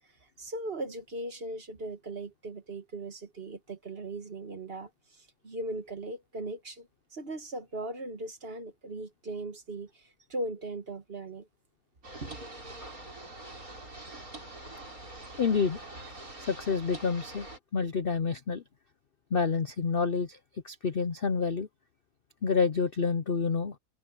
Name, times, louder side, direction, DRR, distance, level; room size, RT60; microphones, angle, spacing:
voice 1, 0.4-11.5 12.2-12.4, right 2 dB, 35° right, 1.5 m, -39 dB
sound 1, 12.0-17.6, right 2 dB, 55° right, 7.9 m, -44 dB
voice 2, 15.4-15.8 16.4-17.5 17.7-18.6 19.3-20.4 20.6-21.7 22.4-23.8, left 5 dB, 50° left, 0.7 m, -28 dB
omnidirectional pair, 1.8 m